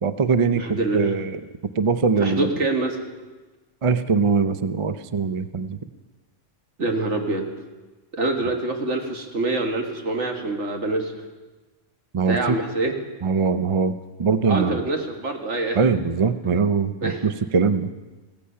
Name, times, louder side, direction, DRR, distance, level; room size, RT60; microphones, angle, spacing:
voice 1, 0.0-1.4 1.8-2.5 3.8-5.8 12.1-12.6 13.2-14.9 15.7-17.9, right 5 dB, 45° right, 11 dB, 0.4 m, -22 dB
voice 2, 0.6-1.1 2.2-3.1 6.8-7.5 8.1-11.2 12.3-12.9 14.5-15.8 17.0-17.2, right 2 dB, 70° right, 3 dB, 2.0 m, -25 dB
16.0 x 15.0 x 5.6 m, 1.2 s
omnidirectional pair, 1.3 m